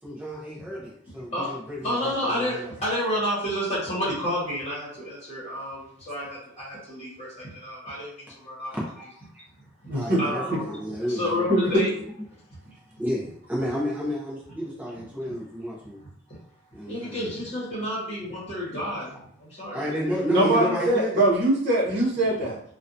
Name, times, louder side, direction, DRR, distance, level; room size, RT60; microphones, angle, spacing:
voice 1, 0.0-2.7 8.7-9.1 9.3-9.4 9.9-11.5 12.7-16.0 16.7-17.3 19.7-21.2, equal, 10° right, -6 dB, 0.5 m, -31 dB
voice 2, 1.8-8.7 10.2-10.7 11.1-11.9 16.3-16.4 16.9-19.9 20.6-20.9 22.2-22.3, equal, 30° left, -7 dB, 1.0 m, -30 dB
voice 3, 9.9-10.2 11.5-11.8 20.3-22.6, right 1 dB, 50° right, -5 dB, 0.8 m, -22 dB
2.5 x 2.2 x 2.5 m, 0.64 s
head